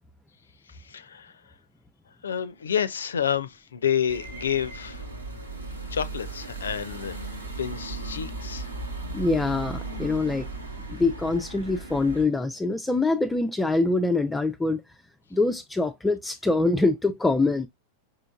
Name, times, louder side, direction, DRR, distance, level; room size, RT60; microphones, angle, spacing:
voice 1, 0.7-1.3 2.2-5.1 5.5-5.6 5.9-7.2 7.6-8.7, left 8 dB, 70° left, 0.4 m, -29 dB
sound 1, 4.1-12.3, right 3 dB, 80° right, 1.2 m, -36 dB
voice 2, 9.1-10.5 10.9-14.8 15.3-17.7, left 3 dB, 10° left, 0.4 m, -24 dB
5.0 x 3.7 x 2.2 m
figure-of-eight pair, 90°, 0 cm